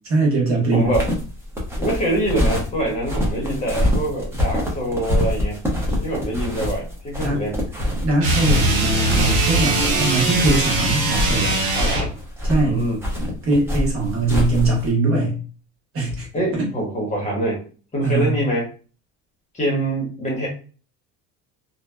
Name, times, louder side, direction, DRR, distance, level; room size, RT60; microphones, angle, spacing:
voice 1, 0.1-0.9 7.2-7.4 8.0-11.5 12.4-12.9 13.4-15.4 15.9-16.3 16.5-16.7 18.0-18.3, right 2 dB, 45° right, -3 dB, 1.1 m, -21 dB
voice 2, 0.7-1.1 1.8-5.6 6.0-7.6 11.7-12.1 12.5-13.0 16.3-17.6 17.9-18.7 19.5-20.5, right 1 dB, 20° left, -2 dB, 0.9 m, -24 dB
sound 1, 0.8-14.9, left 1 dB, 10° right, 0.6 m, -25 dB
sound 2, 8.2-12.2, right 2 dB, 75° right, 0.9 m, -21 dB
2.6 x 2.2 x 2.2 m, 0.38 s
cardioid pair, 140°, 32 cm